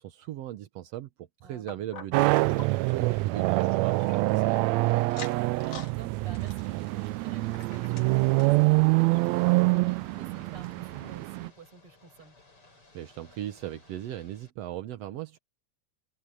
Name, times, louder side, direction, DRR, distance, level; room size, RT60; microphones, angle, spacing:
voice 1, 0.0-4.6 12.9-15.4, right 12 dB, 65° right, 1.8 m, -38 dB
voice 2, 1.4-1.8 2.7-3.0 4.9-12.4, right 3 dB, 45° right, 8.2 m, -52 dB
sound 1, 1.7-4.7 5.0-5.9 6.3-8.6 9.1-9.2 9.5-9.6 10.2-10.3, left 6 dB, 75° left, 4.3 m, -47 dB
sound 2, 2.1-11.5, right 22 dB, 80° right, 1.6 m, -25 dB
Ocean / Boat Water vehicle, 6.6-14.5, left 2 dB, 45° left, 8.2 m, -58 dB
omnidirectional pair, 3.6 m